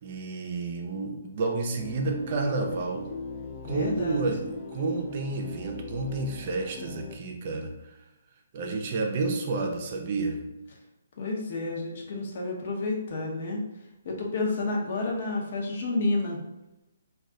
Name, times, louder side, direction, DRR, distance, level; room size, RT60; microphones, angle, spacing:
voice 1, 0.0-3.1 3.6-4.4 4.7-7.7 8.5-10.4, right 3 dB, 40° right, 2 dB, 0.5 m, -30 dB
sound 1, 1.8-7.2, left 3 dB, 35° left, 0.3 m, -40 dB
voice 2, 3.6-4.3 11.2-13.6 14.0-16.4, left 2 dB, 50° left, -1 dB, 0.7 m, -30 dB
2.3 x 2.2 x 3.7 m, 0.94 s
hypercardioid pair, 150°, 0 cm